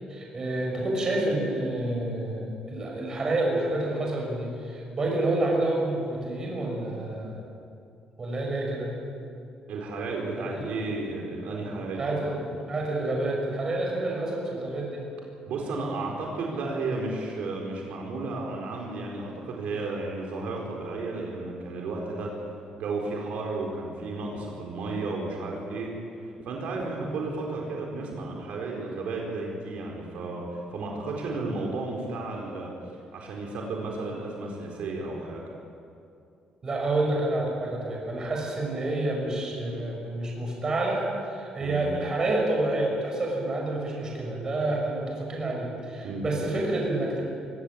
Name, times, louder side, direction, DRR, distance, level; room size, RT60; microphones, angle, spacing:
voice 1, 0.1-7.4 8.2-8.9 10.4-10.5 12.0-15.0 31.4-31.5 36.6-47.2, right 2 dB, 30° right, -1 dB, 6.3 m, -28 dB
voice 2, 9.7-12.3 15.5-22.3 22.7-25.9 26.2-32.7 33.1-35.5 41.6-41.8 46.0-46.3, right 3 dB, 70° right, -1 dB, 4.4 m, -33 dB
23.5 x 17.5 x 8.8 m, 2.6 s
cardioid pair, 155°, 2 cm